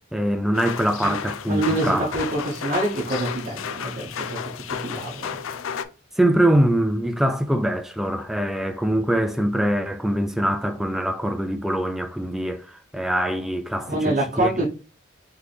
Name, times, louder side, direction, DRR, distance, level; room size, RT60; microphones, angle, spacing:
voice 1, 0.1-2.1 6.2-12.7 12.9-14.5, right 1 dB, ahead, 0.3 m, -23 dB
sound 1, 0.5-5.9, left 7 dB, 90° left, 0.4 m, -32 dB
voice 2, 1.5-4.4 4.7-5.4 13.8-14.7, right 1 dB, 40° right, 0.9 m, -26 dB
4.0 x 3.3 x 3.3 m
head